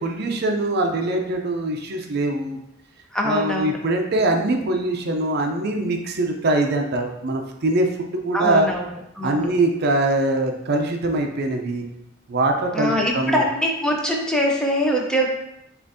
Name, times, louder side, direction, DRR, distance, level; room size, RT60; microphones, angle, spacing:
voice 1, 0.0-2.6 3.2-7.9 8.2-8.7 9.2-11.9 12.3-13.4, right 2 dB, 55° right, 3 dB, 0.5 m, -22 dB
voice 2, 3.1-3.8 8.3-8.8 9.2-9.5 12.7-15.3, equal, 5° left, -1 dB, 0.5 m, -23 dB
6.8 x 2.5 x 2.6 m, 0.81 s
head